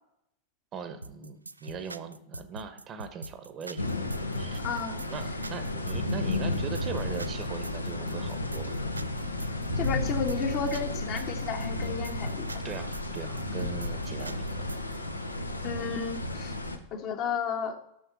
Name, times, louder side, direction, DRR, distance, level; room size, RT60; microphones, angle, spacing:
voice 1, 0.7-4.0 4.4-4.6 5.1-8.7 12.6-14.8, right 6 dB, 30° right, 10 dB, 1.0 m, -40 dB
sound 1, 1.0-15.0, right 2 dB, 80° right, 0.3 m, -43 dB
sound 2, 3.8-16.8, left 2 dB, 85° left, 0.8 m, -33 dB
voice 2, 4.6-5.0 9.8-12.5 15.6-16.5 16.9-17.8, left 6 dB, 40° left, 5 dB, 1.1 m, -32 dB
6.5 x 6.4 x 7.3 m, 0.81 s
figure-of-eight pair, 90°, 0 cm